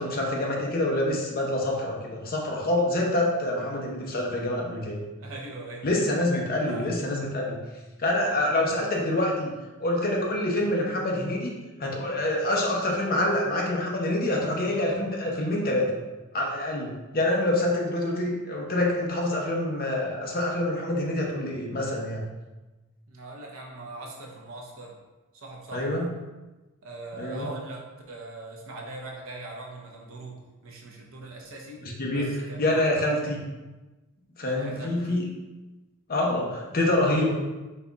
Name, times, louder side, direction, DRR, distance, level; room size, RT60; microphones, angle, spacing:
voice 1, 0.0-5.0 5.8-7.6 8.0-9.5 9.8-11.5 11.8-15.9 16.3-22.3 25.7-26.1 27.2-27.5 31.8-32.3 32.6-33.4 34.4-35.3 36.1-37.3, left 1 dB, 45° left, -1 dB, 0.7 m, -26 dB
voice 2, 5.2-5.9 6.7-6.9 23.1-25.0 25.3-26.1 26.8-31.8 32.1-32.9 34.4-35.2, right 2 dB, 65° right, -1 dB, 0.7 m, -41 dB
4.1 x 2.3 x 3.8 m, 1.2 s
head